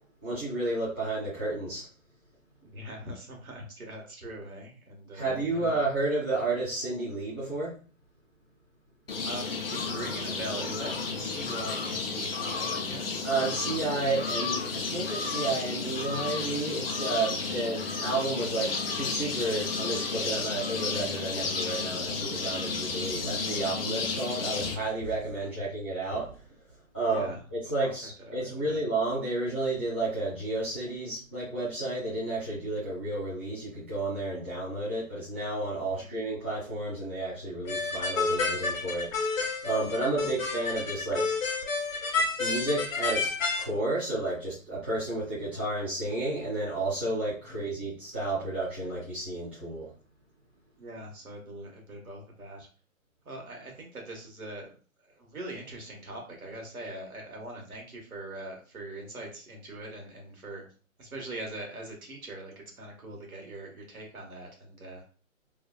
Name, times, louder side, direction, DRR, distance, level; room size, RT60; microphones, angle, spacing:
voice 1, 0.2-1.9 5.1-7.7 13.2-26.4 26.9-39.3 39.6-41.3 42.4-43.3 43.6-49.9, right 2 dB, 10° right, -12 dB, 0.4 m, -31 dB
voice 2, 2.7-5.7 9.2-10.9 11.2-13.3 17.4-17.5 25.4-25.7 27.1-27.4 27.8-27.9 28.5-28.8 36.0-36.1 40.2-40.3 47.5-47.6 50.8-52.7 53.2-54.7 55.1-60.6 61.0-65.0, right 1 dB, 90° right, 0 dB, 1.4 m, -42 dB
sound 1, 9.1-24.7, left 4 dB, 45° left, 0.5 m, -32 dB
sound 2, 37.7-43.6, left 3 dB, 65° left, 0.9 m, -30 dB
3.1 x 2.2 x 2.3 m, 0.38 s
hypercardioid pair, 150°, 42 cm